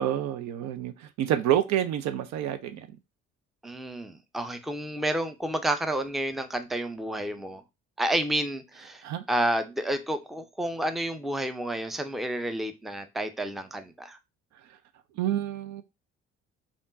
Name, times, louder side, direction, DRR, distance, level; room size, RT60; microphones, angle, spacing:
voice 1, 0.0-2.9 9.0-9.2 15.2-15.8, right 11 dB, 55° right, 0.5 m, -28 dB
voice 2, 3.6-7.6 8.0-9.0 9.3-14.2, right 1 dB, ahead, 0.5 m, -30 dB
3.6 x 2.4 x 3.7 m
hypercardioid pair, 50°, 34 cm